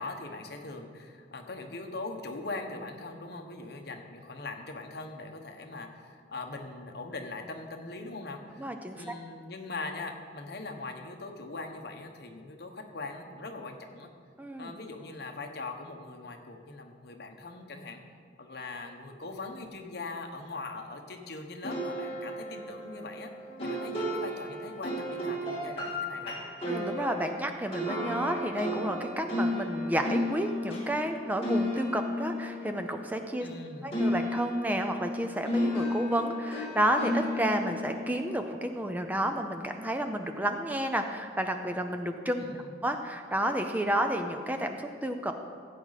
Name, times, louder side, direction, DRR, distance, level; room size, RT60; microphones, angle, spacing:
voice 1, 0.0-14.1 14.6-18.0 18.4-23.3 23.6-26.4 33.4-33.9 42.4-42.7, left 3 dB, 60° left, 4 dB, 1.1 m, -41 dB
voice 2, 8.6-9.2 14.4-14.7 23.7-23.8 26.7-33.5 33.8-45.3, right 1 dB, 10° right, 5 dB, 0.5 m, -31 dB
sound 1, 21.6-33.6 33.9-39.1, left 1 dB, 30° left, 2.4 m, -33 dB
15.5 x 8.6 x 4.1 m, 2.1 s
head